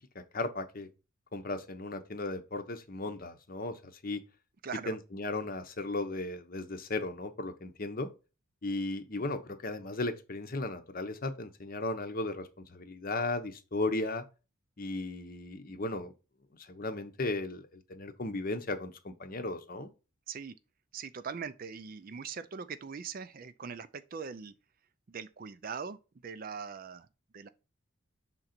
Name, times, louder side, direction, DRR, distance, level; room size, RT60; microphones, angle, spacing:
voice 1, 0.1-0.9 1.3-4.2 4.9-8.1 8.6-14.2 14.8-16.1 16.6-19.9, left 2 dB, 40° left, 0.7 m, -36 dB
voice 2, 4.6-5.0 20.3-20.6 20.9-24.5 25.1-27.1 27.3-27.5, right 6 dB, 40° right, 0.4 m, -41 dB
5.8 x 3.8 x 4.3 m
head